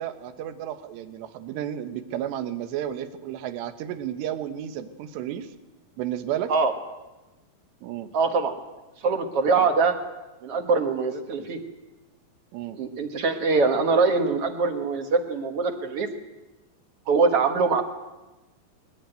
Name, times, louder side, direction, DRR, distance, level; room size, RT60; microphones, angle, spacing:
voice 1, 0.0-5.5 6.0-6.5 7.8-8.1 9.6-9.7 11.4-11.5 12.5-12.8, right 11 dB, 80° right, 10 dB, 3.4 m, -32 dB
voice 2, 8.1-8.6 9.0-10.0 10.4-11.6 12.7-16.1 17.1-17.8, right 4 dB, 55° right, 6 dB, 1.8 m, -23 dB
22.0 x 19.5 x 9.1 m, 1.1 s
omnidirectional pair, 4.9 m